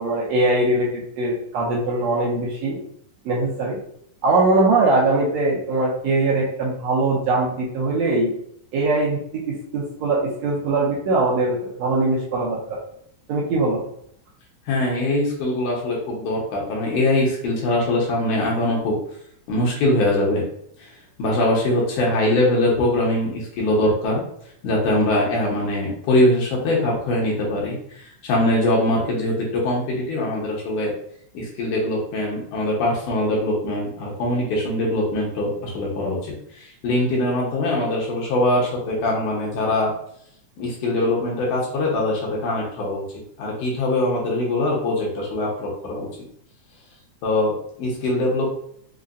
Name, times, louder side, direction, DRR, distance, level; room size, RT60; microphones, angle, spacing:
voice 1, 0.0-2.8 3.2-3.8 4.2-8.3 8.7-9.2 9.5-12.8 13.3-13.8, right 2 dB, 75° right, -5 dB, 1.7 m, -21 dB
voice 2, 14.7-19.0 19.5-20.4 20.8-20.9 21.2-24.2 24.6-30.9 31.3-39.9 40.6-43.0 43.4-46.1 47.2-48.5, left 1 dB, 80° left, -3 dB, 2.4 m, -22 dB
5.5 x 2.1 x 2.5 m, 0.67 s
omnidirectional pair, 3.6 m